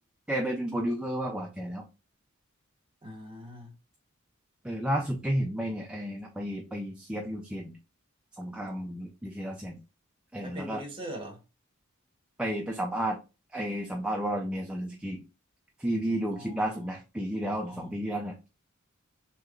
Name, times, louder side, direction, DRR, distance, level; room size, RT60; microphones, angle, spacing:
voice 1, 0.3-1.8 4.6-7.8 8.4-9.8 10.3-10.8 12.4-13.2 13.5-15.2 15.8-18.5, right 1 dB, 5° right, 0.4 m, -32 dB
voice 2, 3.0-3.7 10.4-11.4 16.3-16.9 17.6-18.0, equal, 25° right, 1.0 m, -42 dB
3.4 x 2.8 x 2.4 m
head